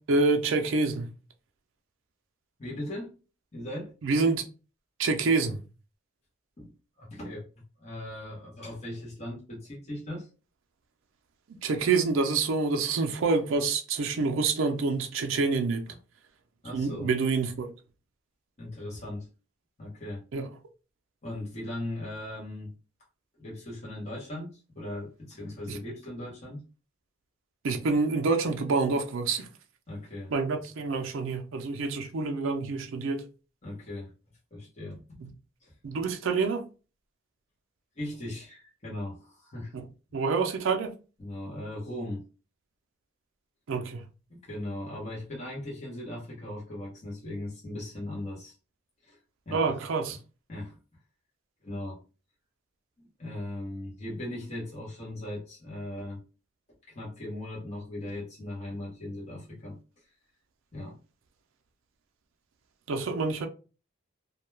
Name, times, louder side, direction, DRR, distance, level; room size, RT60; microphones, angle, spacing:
voice 1, 0.1-1.1 4.0-4.4 5.0-5.6 11.6-15.9 16.7-17.7 20.3-20.5 25.7-25.8 27.6-29.5 30.3-33.2 35.2-35.3 35.8-36.7 39.7-39.9 40.1-41.0 43.7-44.1 49.5-50.2 62.9-63.5, right 4 dB, 70° right, 0.4 m, -27 dB
voice 2, 2.6-3.1 3.5-3.9 6.6-6.7 7.0-7.4 7.8-10.3 15.9-16.0 16.6-17.1 18.6-19.3 19.8-20.2 21.2-22.7 23.4-26.6 29.9-30.3 33.6-34.1 34.5-35.3 35.6-35.7 38.0-39.7 41.2-42.2 44.3-48.5 49.0-49.2 49.5-49.7 50.5-50.8 51.6-52.0 53.2-56.2 56.9-59.8 60.7-61.0, left 1 dB, 35° left, 0.8 m, -38 dB
2.2 x 2.2 x 3.1 m
head